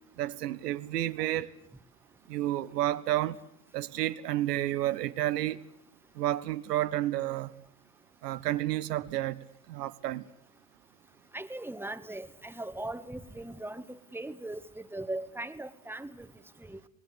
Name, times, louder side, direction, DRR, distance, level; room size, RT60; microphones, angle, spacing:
voice 1, 0.2-1.5 2.3-3.4 3.7-5.6 6.2-7.5 8.2-10.2, right 14 dB, 80° right, 0.9 m, -31 dB
voice 2, 11.3-16.3 16.6-16.8, right 1 dB, 5° right, 1.6 m, -39 dB
25.5 x 19.5 x 8.0 m
hypercardioid pair, 70°, 47 cm